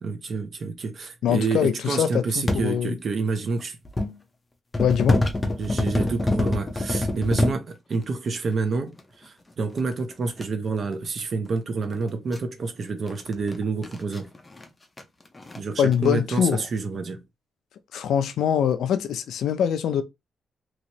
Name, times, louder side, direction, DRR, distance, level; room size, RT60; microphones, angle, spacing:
voice 1, 0.0-3.8 5.6-14.3 15.5-17.2, right 4 dB, 40° right, 0.7 m, -28 dB
voice 2, 1.2-2.9 4.8-5.2 15.8-16.6 17.9-20.0, left 8 dB, 80° left, 0.5 m, -23 dB
sound 1, 2.5-2.7 3.6-4.2 4.7-7.6 9.0-9.1 9.8-10.4 11.5-11.6 11.8-11.9 12.3-12.4 13.1-14.6 15.0-15.1 15.3-15.6 15.9-16.1, left 2 dB, 15° left, 0.6 m, -25 dB
3.0 x 3.0 x 2.7 m
wide cardioid pair, 165°, 0 cm